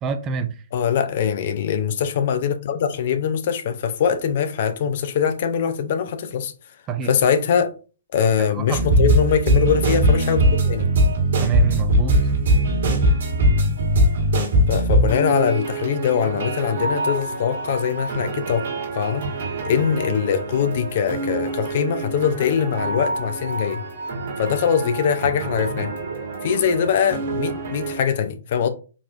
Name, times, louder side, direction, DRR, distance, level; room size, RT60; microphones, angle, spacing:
voice 1, 0.0-0.6 6.9-7.1 8.4-8.8 11.4-12.2, right 7 dB, 25° right, 0.4 m, -26 dB
voice 2, 0.7-6.5 7.0-7.7 8.1-10.9 14.7-18.7 18.9-19.2 19.7-23.8 24.4-25.9 26.4-28.7, left 7 dB, 50° left, 0.5 m, -22 dB
sound 1, 8.7-28.0, right 1 dB, 60° right, 1.5 m, -22 dB
3.9 x 2.9 x 2.5 m
hypercardioid pair, 130°, 0 cm